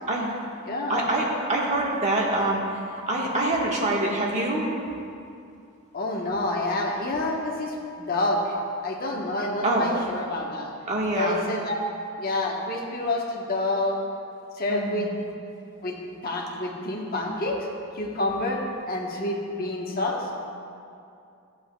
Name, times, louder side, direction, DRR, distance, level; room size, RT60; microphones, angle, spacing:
voice 1, 0.1-0.4 0.9-2.6 2.9-4.7 9.6-9.9 10.9-11.4 14.7-15.1, right 2 dB, 35° right, -3 dB, 1.4 m, -25 dB
voice 2, 0.7-1.0 5.9-8.6 8.8-10.7 11.1-11.8 12.2-13.9 14.6-15.1 15.8-17.7 17.9-18.6 18.9-20.2, left 2 dB, 45° left, -1 dB, 1.1 m, -28 dB
16.0 x 8.6 x 2.3 m, 2.5 s
head